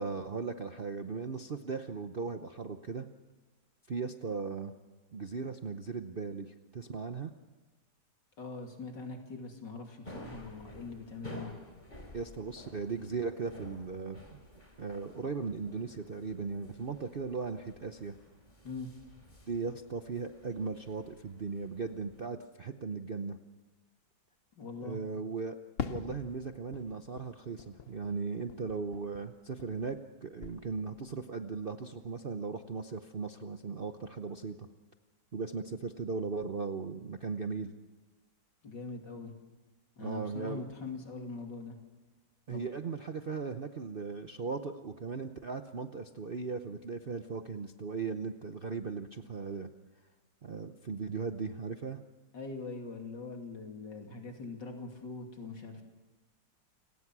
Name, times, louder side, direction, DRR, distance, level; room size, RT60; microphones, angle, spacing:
voice 1, 0.0-3.1 3.9-4.7 5.1-7.3 12.1-14.4 14.8-18.2 19.5-23.4 24.8-25.6 25.9-34.7 35.3-37.7 40.0-40.7 42.5-49.7 50.4-52.0, right 5 dB, 50° right, 7 dB, 0.7 m, -37 dB
voice 2, 8.4-11.5 18.6-18.9 24.5-25.0 38.6-39.3 40.0-41.8 42.5-42.7 52.3-55.8, left 3 dB, 75° left, 3 dB, 3.5 m, -42 dB
sound 1, 10.0-22.3, left 1 dB, 25° left, 3.6 m, -52 dB
Fireworks, 25.8-30.1 30.4-31.2, left 6 dB, 45° left, 0.8 m, -44 dB
28.5 x 18.0 x 6.1 m, 1.3 s
omnidirectional pair, 1.9 m